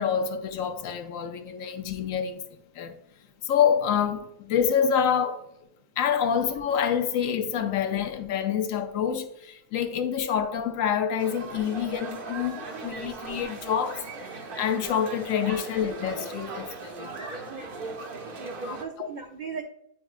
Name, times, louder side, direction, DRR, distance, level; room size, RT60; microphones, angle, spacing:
voice 1, 0.0-3.0 3.4-5.5 6.0-14.0 14.3-17.2 18.6-19.1, left 8 dB, 70° left, 0.9 m, -27 dB
sound 1, 11.2-18.8, right 3 dB, 45° right, 0.8 m, -38 dB
voice 2, 17.0-19.6, right 4 dB, 80° right, 0.4 m, -39 dB
9.2 x 4.4 x 2.4 m
omnidirectional pair, 1.5 m